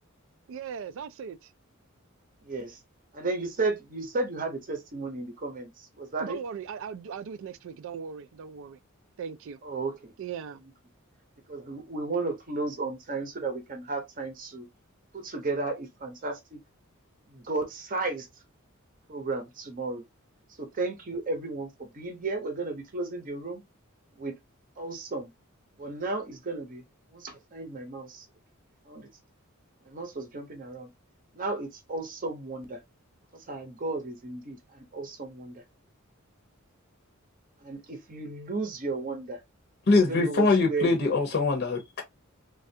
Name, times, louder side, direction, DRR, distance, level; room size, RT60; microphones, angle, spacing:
voice 1, 0.5-1.4 6.2-8.8 9.2-9.6 10.2-10.6, right 7 dB, 60° right, 0.3 m, -38 dB
voice 2, 2.4-2.8 3.1-6.4 9.6-10.1 10.6-10.7 11.5-14.7 15.1-16.6 17.3-18.4 19.1-20.0 20.6-23.6 24.1-24.4 24.8-25.3 25.8-26.8 27.1-28.3 28.8-29.1 29.8-30.9 31.3-32.8 33.3-35.6 37.6-39.4 40.1-41.2, right 3 dB, 40° right, 0.7 m, -34 dB
voice 3, 39.9-42.0, left 3 dB, 50° left, 0.7 m, -23 dB
3.2 x 2.4 x 2.6 m
head